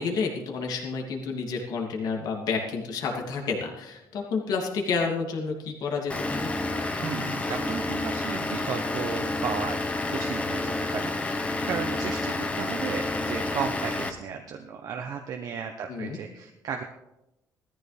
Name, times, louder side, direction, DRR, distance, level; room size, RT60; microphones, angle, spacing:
voice 1, 0.0-6.5 15.9-16.2, left 4 dB, 70° left, 0 dB, 2.8 m, -30 dB
Vehicle / Engine, 6.1-14.1, left 2 dB, 20° left, 1.2 m, -29 dB
voice 2, 7.0-9.8 10.1-16.8, right 7 dB, 65° right, 4 dB, 1.0 m, -34 dB
18.0 x 14.0 x 3.5 m, 0.91 s
cardioid pair, 130°, 7 cm